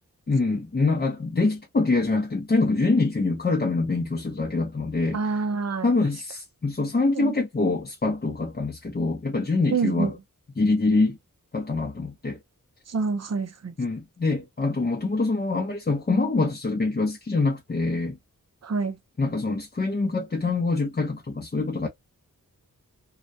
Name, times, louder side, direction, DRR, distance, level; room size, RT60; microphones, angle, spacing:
voice 1, 0.3-5.2 5.8-10.1 10.6-11.2 11.5-12.4 13.8-18.2 19.2-21.9, left 3 dB, 30° left, 0.6 m, -25 dB
voice 2, 5.1-5.9 7.1-7.4 9.7-10.1 12.9-13.7 18.6-19.0, right 4 dB, 50° right, 0.6 m, -27 dB
2.2 x 2.1 x 2.6 m
wide cardioid pair, 70°, 34 cm